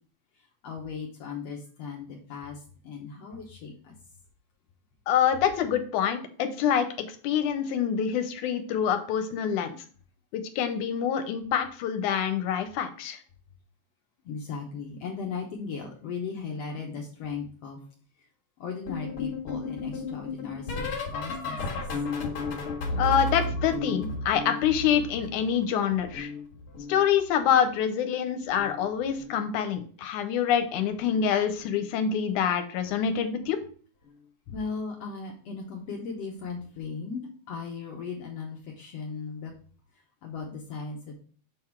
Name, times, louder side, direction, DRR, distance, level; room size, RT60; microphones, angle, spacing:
voice 1, 0.6-4.0 14.3-17.8 18.6-21.8 22.9-23.1 34.5-39.5 40.2-41.1, left 5 dB, 65° left, 0 dB, 1.8 m, -37 dB
voice 2, 5.1-9.8 10.3-13.2 23.0-26.3 26.9-33.6, left 8 dB, 90° left, 8 dB, 2.2 m, -26 dB
sound 1, 18.9-25.6 25.9-27.5 28.5-28.8 29.1-29.4 31.0-31.3 31.6-31.8 33.4-33.5, left 2 dB, 50° left, 2.3 m, -34 dB
6.8 x 3.8 x 4.4 m, 0.43 s
omnidirectional pair, 3.5 m